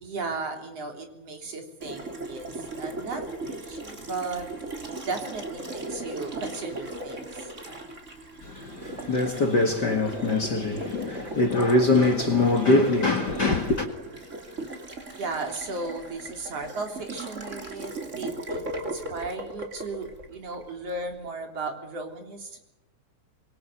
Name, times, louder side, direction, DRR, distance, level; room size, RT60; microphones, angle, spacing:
voice 1, 0.0-4.5 4.8-7.5 15.2-22.6, right 3 dB, 55° right, 4.4 m, -36 dB
Water tap faucet, 1.8-21.0, right 2 dB, 25° right, 3.2 m, -37 dB
voice 2, 8.4-13.9, left 2 dB, 40° left, 2.0 m, -23 dB
26.5 x 22.0 x 6.8 m
omnidirectional pair, 3.4 m